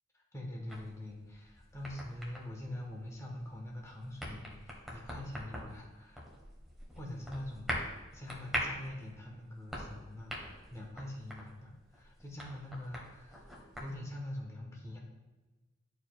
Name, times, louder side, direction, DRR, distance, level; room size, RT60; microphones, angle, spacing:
voice 1, 0.1-6.2 6.9-7.8 8.1-13.5 13.8-15.0, left 1 dB, 15° left, -1 dB, 1.1 m, -44 dB
sound 1, 0.7-14.0, equal, ahead, 1.1 m, -44 dB
11.0 x 4.6 x 2.3 m, 1.2 s
head